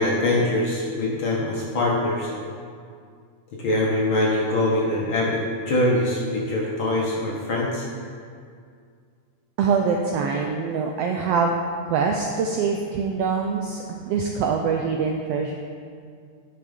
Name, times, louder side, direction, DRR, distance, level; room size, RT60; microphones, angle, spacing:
voice 1, 0.0-2.3 3.5-7.8, left 1 dB, 55° left, -4 dB, 1.5 m, -23 dB
voice 2, 9.6-11.5 11.8-15.5, right 5 dB, 90° right, 2 dB, 1.4 m, -24 dB
10.5 x 6.1 x 5.2 m, 2.2 s
omnidirectional pair, 3.4 m